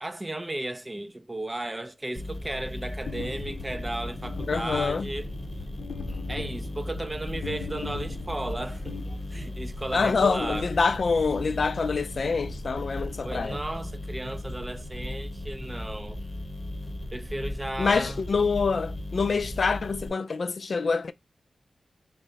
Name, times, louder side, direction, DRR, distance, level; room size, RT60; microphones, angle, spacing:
voice 1, 0.0-5.3 6.3-9.0 9.3-10.7 13.2-16.2 17.1-18.2, right 1 dB, 20° right, 0.5 m, -34 dB
sound 1, 2.1-20.1, left 1 dB, 10° left, 1.3 m, -37 dB
sound 2, 3.1-9.7, left 5 dB, 90° left, 0.7 m, -40 dB
voice 2, 4.5-5.1 9.9-13.6 17.8-21.1, left 4 dB, 60° left, 0.3 m, -26 dB
sound 3, 7.7-14.6 17.1-17.2, left 2 dB, 30° left, 1.0 m, -49 dB
4.6 x 2.1 x 3.9 m
wide cardioid pair, 85°, 0 cm